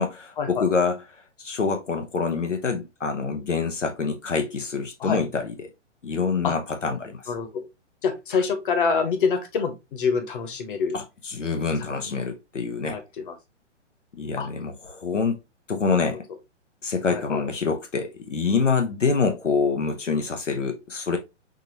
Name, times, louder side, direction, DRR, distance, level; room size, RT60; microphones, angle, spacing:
voice 1, 0.0-5.7 6.0-7.3 10.9-13.0 14.1-15.4 15.7-16.2 16.8-21.2, left 4 dB, 80° left, 1.0 m, -26 dB
voice 2, 7.3-7.6 8.0-11.0 12.9-13.3 14.4-14.5 16.1-16.2 17.1-17.4, left 5 dB, 45° left, 1.3 m, -26 dB
6.0 x 2.9 x 3.0 m
figure-of-eight pair, 125°, 36 cm